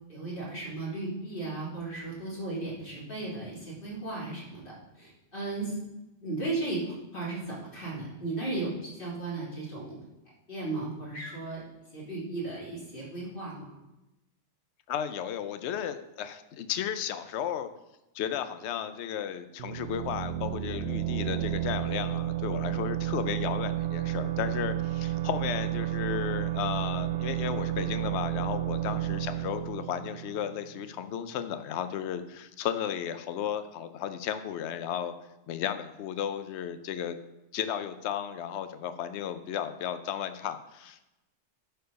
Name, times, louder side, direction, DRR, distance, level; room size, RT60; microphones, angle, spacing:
voice 1, 0.1-5.7 6.2-9.9 10.5-11.6 11.9-13.5 28.8-29.1, right 2 dB, 45° left, -6 dB, 3.2 m, -35 dB
voice 2, 14.9-17.7 18.1-35.1 35.5-37.2 37.5-41.0, left 9 dB, 70° left, 11 dB, 0.9 m, -34 dB
sound 1, 19.6-31.1, right 14 dB, 65° right, 0.8 m, -32 dB
11.5 x 4.5 x 5.3 m, 0.95 s
omnidirectional pair, 1.3 m